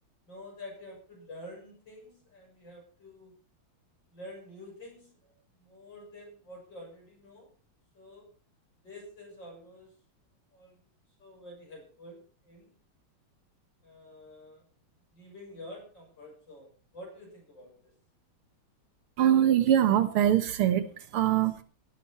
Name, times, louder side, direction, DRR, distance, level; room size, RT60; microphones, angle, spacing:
voice 1, 0.3-3.3 4.1-7.5 7.9-8.3 8.8-9.9 10.5-10.9 11.2-12.8 13.8-14.6 15.1-17.9, left 1 dB, 55° left, 0 dB, 7.4 m, -48 dB
voice 2, 19.2-21.6, right 11 dB, 90° right, 11 dB, 2.2 m, -23 dB
16.5 x 13.0 x 4.4 m, 0.40 s
omnidirectional pair, 2.3 m